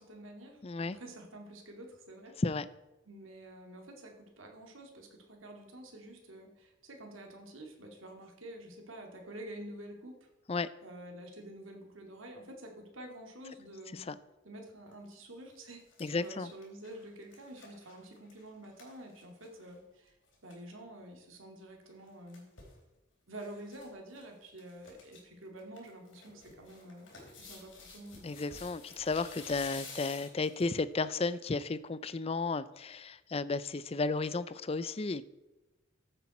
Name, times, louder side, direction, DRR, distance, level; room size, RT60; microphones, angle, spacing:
voice 1, 0.0-2.4 3.1-10.2 10.8-14.1 14.4-20.2 20.4-22.5 23.3-27.1 27.3-28.4, right 1 dB, 90° right, 2 dB, 2.5 m, -48 dB
voice 2, 0.6-1.0 2.4-2.7 10.5-10.7 13.9-14.2 16.0-16.5 28.2-35.3, left 3 dB, 30° left, 15 dB, 0.5 m, -33 dB
sound 1, 14.9-15.1 15.5-19.8 20.1-20.2 20.3-20.6 21.9-22.8 23.4-23.9 24.1-24.2 24.6-25.2 25.6-30.8 31.3-31.4, left 4 dB, 75° left, 3.7 m, -51 dB
14.5 x 8.1 x 4.3 m, 1.0 s
head